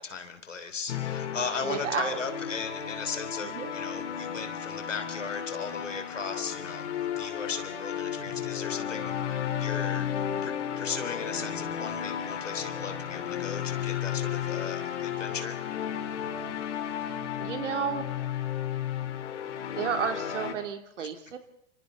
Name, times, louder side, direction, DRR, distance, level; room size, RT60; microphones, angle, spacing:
voice 1, 0.0-6.9 7.2-10.1 10.4-15.6 21.0-21.1, left 5 dB, 90° left, 9 dB, 3.3 m, -37 dB
sound 1, 0.9-20.5, left 9 dB, 70° left, 3.8 m, -33 dB
voice 2, 1.6-2.2 3.4-3.7 17.4-18.1 19.7-21.4, right 7 dB, 75° right, 6 dB, 3.3 m, -32 dB
30.0 x 25.0 x 4.1 m, 0.74 s
hypercardioid pair, 100°, 36 cm